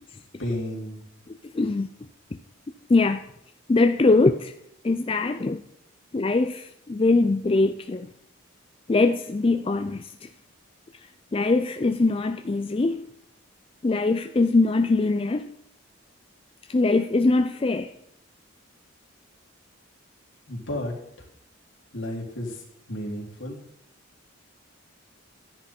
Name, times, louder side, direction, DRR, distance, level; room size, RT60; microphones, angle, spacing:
voice 1, 0.4-1.0 20.5-21.0 21.9-23.6, left 1 dB, 70° left, 3.5 m, -32 dB
voice 2, 1.5-1.9 2.9-3.2 3.7-4.5 4.8-5.6 6.1-8.1 8.9-10.3 11.3-13.0 13.8-15.5 16.7-17.9, left 3 dB, 25° left, 0.3 m, -22 dB
13.5 x 10.5 x 4.4 m
head